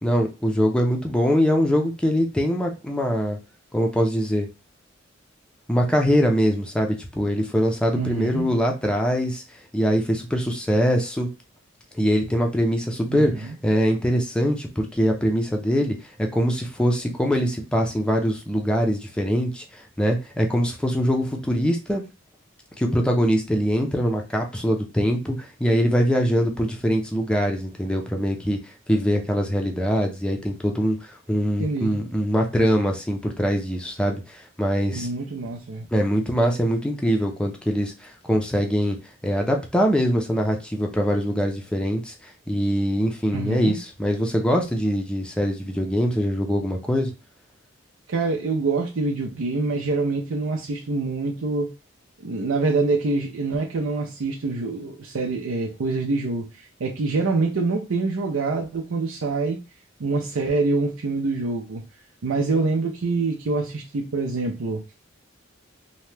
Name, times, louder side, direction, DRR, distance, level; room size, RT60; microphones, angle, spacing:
voice 1, 0.0-3.4 3.7-4.5 5.7-9.4 9.7-11.3 11.9-22.0 22.8-28.6 28.9-35.1 35.9-39.0 39.2-47.1, equal, 5° left, 1 dB, 0.5 m, -23 dB
voice 2, 7.9-8.5 13.1-13.5 31.6-31.9 34.9-35.9 43.3-43.8 48.1-51.7 52.2-56.5 56.8-59.6 60.0-61.8 62.2-64.8, right 3 dB, 85° right, 0 dB, 0.5 m, -25 dB
2.8 x 2.2 x 3.2 m, 0.29 s
head